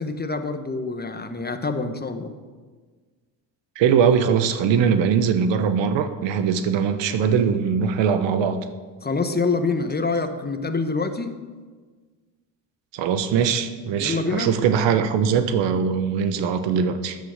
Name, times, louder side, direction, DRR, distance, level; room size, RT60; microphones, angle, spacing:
voice 1, 0.0-2.3 9.0-11.4 14.0-14.5, left 3 dB, 20° left, 8 dB, 1.3 m, -26 dB
voice 2, 3.8-8.6 12.9-17.2, right 7 dB, 75° right, 10 dB, 1.3 m, -21 dB
13.5 x 11.0 x 6.6 m, 1.5 s
cardioid pair, 95°, 45 cm